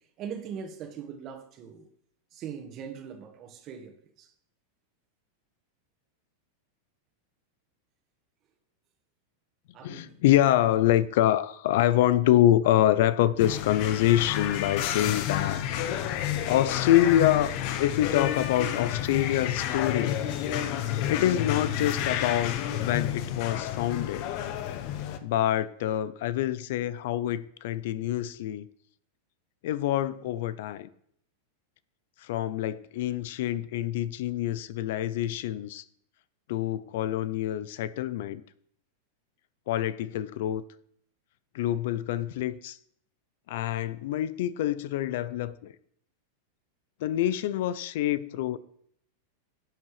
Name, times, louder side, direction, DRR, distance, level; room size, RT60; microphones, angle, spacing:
voice 1, 0.2-1.9 2.3-4.3 9.7-10.2, right 7 dB, 30° right, 1.6 m, -41 dB
voice 2, 9.8-15.6 16.4-17.5 17.8-20.2 21.1-24.3 25.2-28.7 29.6-30.9 32.2-35.8 36.5-38.4 39.7-40.6 41.5-42.8 43.5-45.7 47.0-48.6, left 12 dB, 60° left, 0.6 m, -26 dB
sound 1, 13.4-25.2, left 10 dB, 45° left, 1.0 m, -30 dB
11.5 x 7.7 x 4.9 m
supercardioid pair, 150°, 0 cm